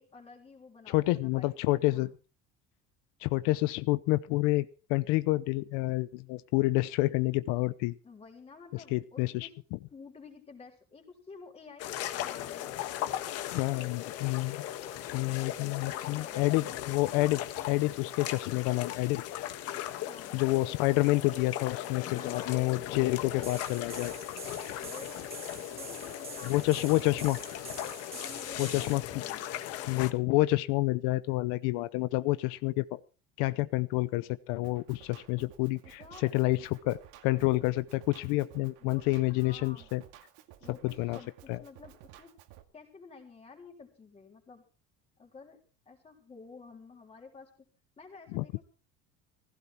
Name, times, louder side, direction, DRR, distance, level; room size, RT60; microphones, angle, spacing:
voice 1, 0.0-2.1 8.0-9.5 9.9-13.0 15.4-16.8 19.7-20.4 22.0-22.6 24.8-25.2 25.7-26.8 27.1-27.4 28.1-29.5 35.8-36.4 38.8-39.9 40.6-42.3 42.7-44.6 45.2-45.6 45.9-47.5 48.0-48.6, left 4 dB, 20° left, 2 dB, 3.7 m, -51 dB
voice 2, 0.9-2.1 3.2-8.0 8.9-9.8 13.5-14.6 15.1-19.4 20.3-24.1 26.4-27.4 28.6-29.0 29.9-33.0 33.4-37.0 37.2-40.0 40.7-41.2 41.5-41.6 48.3-48.4, left 20 dB, 90° left, 15 dB, 0.8 m, -28 dB
sound 1, 11.8-30.1, left 12 dB, 55° left, 1.5 m, -38 dB
sound 2, 23.4-29.0, right 5 dB, 20° right, 1.3 m, -46 dB
Drum kit, 34.6-42.6, right 12 dB, 85° right, 2.2 m, -55 dB
16.0 x 16.0 x 4.4 m, 0.36 s
cardioid pair, 175°, 30 cm